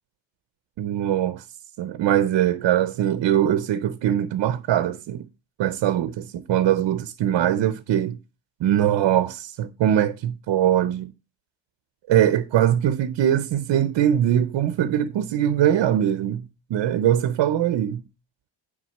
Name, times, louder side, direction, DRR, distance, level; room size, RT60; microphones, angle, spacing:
voice 1, 0.8-1.4 1.8-5.3 5.6-8.2 8.6-11.1 12.1-18.0, right 11 dB, 60° right, 0.6 m, -22 dB
9.3 x 3.8 x 7.1 m
cardioid pair, 175°, 47 cm